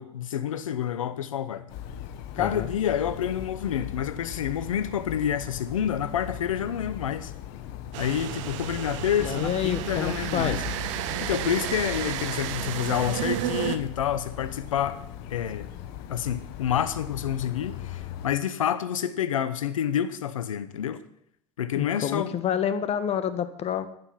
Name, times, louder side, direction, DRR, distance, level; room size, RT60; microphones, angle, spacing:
voice 1, 0.0-1.7 2.4-7.3 8.0-10.6 11.2-15.0 15.3-15.7 16.1-21.0 21.6-22.3, left 9 dB, 85° left, 0.9 m, -28 dB
sound 1, 1.7-18.3, left 9 dB, 60° left, 1.2 m, -39 dB
voice 2, 2.4-2.7 9.2-10.8 21.7-23.9, left 9 dB, 40° left, 1.3 m, -28 dB
sound 2, 7.9-13.8, right 12 dB, 70° right, 1.0 m, -32 dB
11.5 x 9.6 x 5.8 m
hypercardioid pair, 85°, 17 cm